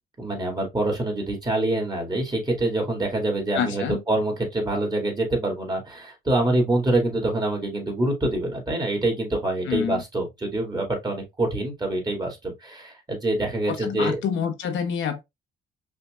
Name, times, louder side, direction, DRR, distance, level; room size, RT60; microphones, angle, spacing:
voice 1, 0.2-14.2, right 2 dB, 20° right, 2.1 m, -25 dB
voice 2, 3.5-4.0 9.7-10.0 13.7-15.2, left 7 dB, 75° left, 0.9 m, -27 dB
5.6 x 2.6 x 2.4 m
cardioid pair, 90°, 20 cm